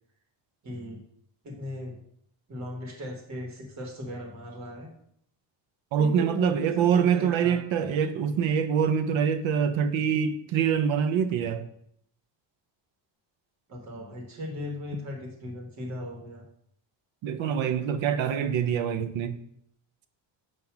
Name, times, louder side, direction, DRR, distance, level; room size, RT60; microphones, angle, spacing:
voice 1, 0.6-1.0 1.4-2.0 2.5-4.9 6.0-7.6 13.7-16.4 18.6-18.8, left 1 dB, 35° right, 1.4 m, -37 dB
voice 2, 5.9-11.7 17.2-19.4, right 7 dB, 85° right, 0.7 m, -25 dB
7.1 x 2.7 x 5.8 m
cardioid pair, 170°, 46 cm